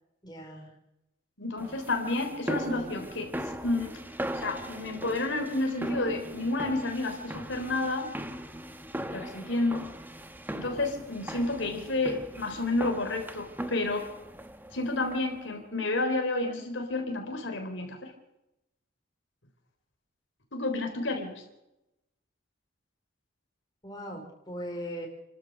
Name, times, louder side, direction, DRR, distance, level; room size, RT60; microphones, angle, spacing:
voice 1, 0.2-0.7 23.8-25.1, equal, 20° left, 1 dB, 4.4 m, -39 dB
voice 2, 1.4-4.0 4.3-8.1 9.1-9.9 10.5-14.1 14.7-18.1 20.5-21.3, left 2 dB, 60° left, 4 dB, 3.7 m, -30 dB
sound 1, 1.6-15.5, right 1 dB, 10° right, 1.2 m, -39 dB
29.5 x 13.5 x 6.6 m, 0.91 s
head